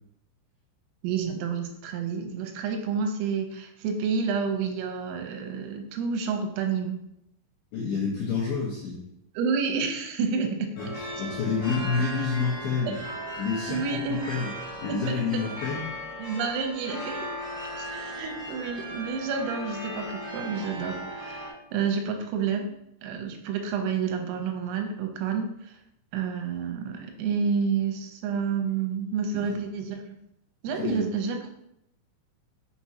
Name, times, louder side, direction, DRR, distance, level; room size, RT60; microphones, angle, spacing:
voice 1, 1.0-7.0 9.4-10.7 12.9-13.0 13.7-14.2 14.9-15.4 16.2-17.3 17.8-22.7 23.0-25.8 26.1-30.0 30.6-31.5, right 5 dB, 90° right, 4 dB, 3.4 m, -29 dB
voice 2, 7.7-9.0 10.8-10.9 11.2-13.0 13.4-14.0 14.3-14.5 14.8-15.9 30.8-31.0, left 5 dB, 75° left, -6 dB, 2.3 m, -28 dB
sound 1, 10.8-21.5, equal, 50° left, 1.9 m, -37 dB
6.1 x 5.9 x 2.8 m, 0.80 s
omnidirectional pair, 5.9 m